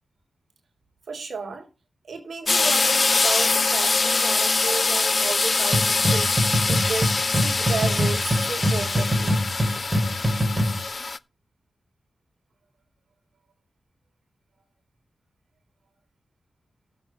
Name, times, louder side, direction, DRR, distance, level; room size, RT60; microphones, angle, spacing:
voice 1, 1.1-1.7 2.1-9.4, right 4 dB, 65° right, 3.9 m, -33 dB
sound 1, 2.5-11.2, left 3 dB, 50° left, 0.5 m, -23 dB
sound 2, 5.7-10.8, equal, 20° right, 3.0 m, -24 dB
7.3 x 6.7 x 7.4 m
cardioid pair, 40°, 0 cm